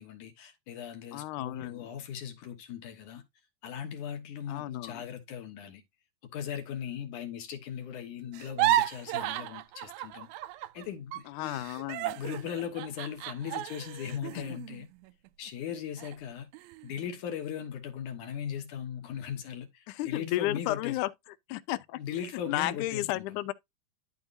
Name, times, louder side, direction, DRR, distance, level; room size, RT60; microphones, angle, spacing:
voice 1, 0.0-3.2 3.6-5.8 6.2-10.3 10.7-11.7 12.2-14.9 15.4-16.5 16.8-21.0 22.0-23.4, left 8 dB, 65° left, 2.5 m, -38 dB
voice 2, 1.1-1.9 4.5-5.0 11.3-12.2 14.3-14.6 19.9-21.1 21.5-22.0 22.5-23.5, left 16 dB, 90° left, 1.8 m, -33 dB
sound 1, 8.3-10.9 11.1-15.5 16.0-16.2 16.5-17.0, right 14 dB, 85° right, 2.4 m, -33 dB
12.5 x 4.6 x 2.5 m
omnidirectional pair, 4.2 m